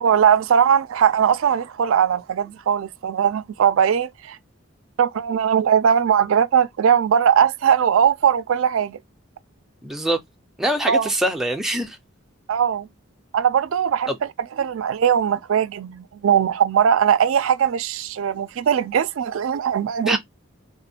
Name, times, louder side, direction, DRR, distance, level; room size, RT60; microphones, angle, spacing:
voice 1, 0.0-4.4 5.0-9.0 10.9-11.1 12.5-12.9 13.3-14.1 14.6-20.2, right 8 dB, 80° right, 0.4 m, -19 dB
voice 2, 9.8-10.2 10.6-12.0 14.1-14.2 20.1-20.2, right 1 dB, ahead, 0.4 m, -23 dB
3.4 x 2.5 x 2.7 m
head